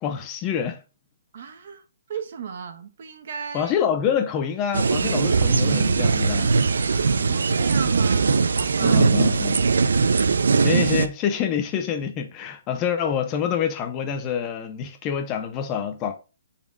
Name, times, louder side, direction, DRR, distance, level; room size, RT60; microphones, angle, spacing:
voice 1, 0.0-0.8 3.5-6.5 8.8-9.7 10.6-16.2, left 8 dB, 20° left, 0.7 m, -26 dB
voice 2, 1.3-1.8 2.1-3.7 7.0-9.1, right 6 dB, 55° right, 1.2 m, -36 dB
sound 1, 4.7-11.1, right 4 dB, 85° right, 0.6 m, -20 dB
10.0 x 4.2 x 2.5 m
hypercardioid pair, 160°, 0 cm